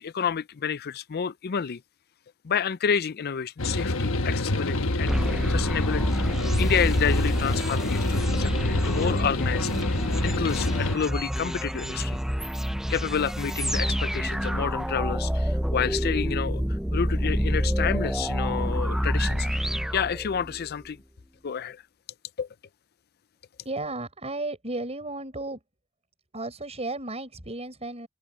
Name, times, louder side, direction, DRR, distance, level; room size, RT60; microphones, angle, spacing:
voice 1, 0.0-1.8 2.4-5.2 5.5-6.1 6.6-9.7 10.2-12.2 12.9-16.6 16.9-19.5 19.9-21.0 21.4-21.8 22.4-22.5, left 7 dB, 50° left, 0.5 m, -29 dB
sound 1, 3.6-11.0, left 2 dB, 75° left, 1.2 m, -27 dB
sound 2, 5.1-20.7, equal, ahead, 0.6 m, -28 dB
voice 2, 23.6-25.6 26.3-28.1, right 2 dB, 30° right, 6.2 m, -34 dB
open air
head